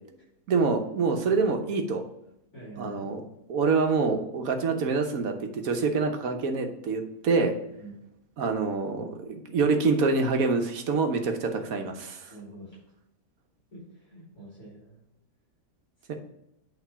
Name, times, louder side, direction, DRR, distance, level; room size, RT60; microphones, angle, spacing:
voice 1, 0.5-2.0 2.8-3.2 3.5-7.5 8.4-12.3 16.1-16.2, right 4 dB, 60° right, 5 dB, 1.3 m, -26 dB
voice 2, 1.2-1.5 2.5-3.1 7.8-8.0 12.3-12.8 13.7-15.0 16.0-16.1, right 1 dB, 45° left, -8 dB, 3.7 m, -45 dB
8.5 x 3.8 x 5.6 m, 0.82 s
omnidirectional pair, 1.7 m